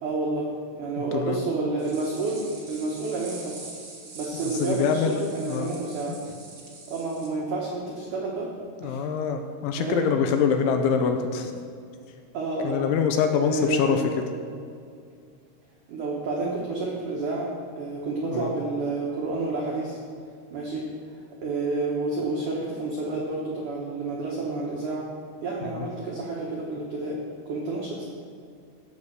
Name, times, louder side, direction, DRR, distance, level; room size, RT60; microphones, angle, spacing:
voice 1, 0.0-3.6 4.1-6.2 6.9-8.5 8.8-9.0 9.8-10.0 11.0-11.1 12.3-12.8 13.2-14.0 15.9-20.0 20.5-25.1 25.4-27.2 27.5-28.0, right 3 dB, 85° right, -3 dB, 1.7 m, -30 dB
voice 2, 1.0-1.5 4.4-5.8 6.1-6.2 8.8-11.6 12.6-14.0 18.2-18.6 25.6-25.9, left 6 dB, 80° left, 6 dB, 2.9 m, -25 dB
sound 1, 1.8-7.3, right 3 dB, 50° right, 1.8 m, -43 dB
16.0 x 5.5 x 6.7 m, 2.3 s
omnidirectional pair, 5.7 m